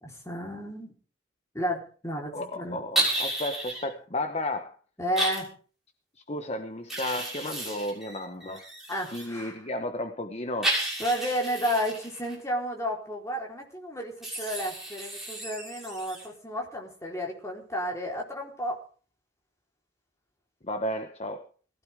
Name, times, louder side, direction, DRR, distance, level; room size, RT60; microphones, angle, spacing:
voice 1, 0.0-1.0 1.5-2.8 5.0-5.5 8.9-9.6 11.0-18.8, equal, 15° left, -1 dB, 4.2 m, -32 dB
voice 2, 2.3-4.8 6.2-8.7 9.1-10.8 20.6-21.5, left 1 dB, 35° left, 7 dB, 1.1 m, -33 dB
sound 1, 3.0-3.8 5.2-5.4 6.9-9.3 10.6-12.4 14.2-16.3, right 1 dB, ahead, 6.7 m, -32 dB
21.5 x 16.0 x 3.7 m, 0.40 s
head